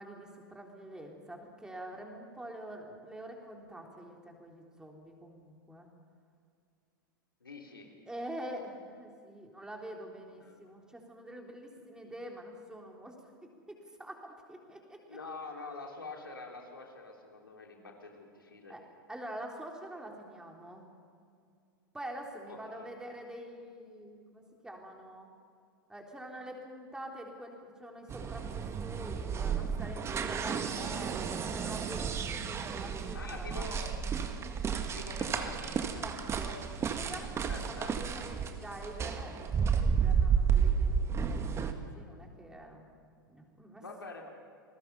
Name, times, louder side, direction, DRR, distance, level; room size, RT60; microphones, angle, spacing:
voice 1, 0.0-5.9 8.1-13.2 13.7-15.2 18.7-18.8 19.1-20.9 21.9-25.3 25.9-33.6 36.0-41.5 41.8-42.9 43.3-43.8, right 1 dB, 5° right, 1 dB, 3.7 m, -46 dB
voice 2, 7.4-7.9 10.4-10.6 15.1-18.7 22.5-22.9 33.1-33.9 34.9-36.1 37.5-37.9 43.8-44.3, left 3 dB, 80° left, 1 dB, 3.3 m, -45 dB
sound 1, 28.1-41.7, right 6 dB, 25° right, 1.7 m, -32 dB
29.0 x 20.0 x 5.6 m, 2.3 s
figure-of-eight pair, 95°, 12 cm